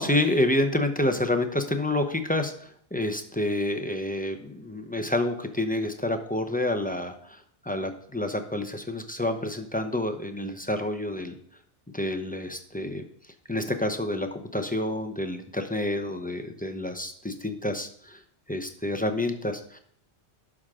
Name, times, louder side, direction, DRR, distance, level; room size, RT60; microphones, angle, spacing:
voice 1, 0.0-7.4 7.6-11.3 11.9-13.0 13.5-18.2 18.5-19.8, left 1 dB, 10° left, 5 dB, 0.6 m, -28 dB
11.5 x 6.1 x 3.7 m, 0.64 s
omnidirectional pair, 1.1 m